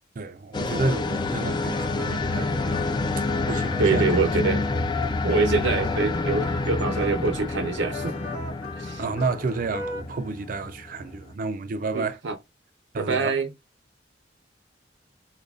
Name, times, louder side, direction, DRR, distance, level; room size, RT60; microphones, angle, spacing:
voice 1, 0.2-4.3 4.6-4.7 9.0-12.2 12.9-13.4, right 3 dB, 50° right, 0.5 m, -31 dB
sound 1, 0.5-11.3, left 3 dB, 25° left, 0.3 m, -28 dB
sound 2, 1.3-10.0, equal, 75° left, 1.4 m, -38 dB
voice 2, 3.8-4.6 5.2-8.1 8.8-9.0 11.9-12.3 13.0-13.5, right 4 dB, 85° right, 0.7 m, -25 dB
4.9 x 2.2 x 2.3 m
head